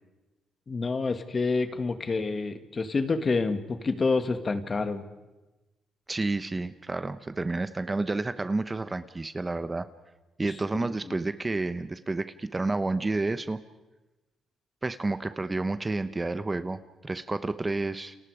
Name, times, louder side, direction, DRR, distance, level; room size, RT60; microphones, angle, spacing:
voice 1, 0.7-5.1 11.1-11.2, left 4 dB, 35° left, 9 dB, 2.0 m, -28 dB
voice 2, 6.1-9.9 10.4-13.6 14.8-18.2, right 2 dB, 20° right, 12 dB, 0.9 m, -30 dB
29.5 x 28.0 x 5.0 m, 1.1 s
cardioid pair, 90°, 0 cm